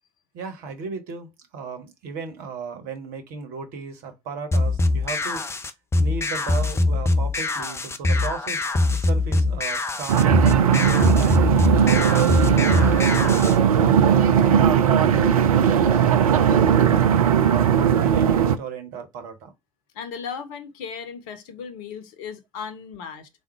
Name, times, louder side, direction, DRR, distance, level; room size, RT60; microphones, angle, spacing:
voice 1, 0.3-5.5 6.0-10.4 10.8-13.3 13.7-14.6 15.0-16.9 17.4-19.5, right 5 dB, 50° right, 1.2 m, -35 dB
sound 1, 4.5-13.6, left 2 dB, 15° left, 0.6 m, -23 dB
sound 2, 10.1-18.6, right 8 dB, 75° right, 0.5 m, -18 dB
voice 2, 19.9-23.3, left 6 dB, 55° left, 0.8 m, -36 dB
3.7 x 2.4 x 4.5 m
figure-of-eight pair, 70°, 18 cm